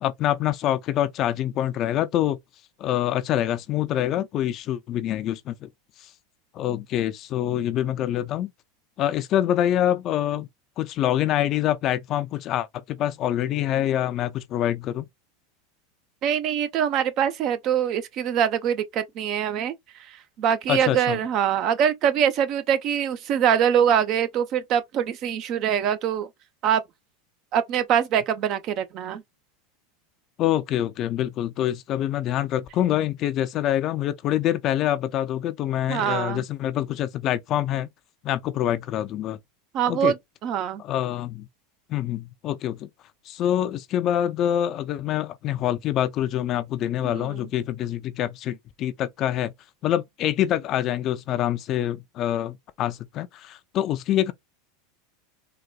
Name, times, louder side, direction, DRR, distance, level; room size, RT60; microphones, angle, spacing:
voice 1, 0.0-2.4 2.8-5.7 6.0-6.1 6.5-8.5 9.0-10.5 10.8-15.1 20.7-21.2 30.4-37.9 38.2-39.4 39.9-40.1 40.8-41.5 41.9-42.9 43.3-49.5 49.8-54.3, left 12 dB, 45° left, 0.4 m, -25 dB
voice 2, 16.2-19.7 20.1-26.3 26.6-26.8 27.5-29.2 35.9-36.4 39.7-40.2 40.4-40.8 47.0-47.5, right 9 dB, 50° right, 0.6 m, -23 dB
3.9 x 2.2 x 2.3 m
hypercardioid pair, 105°, 0 cm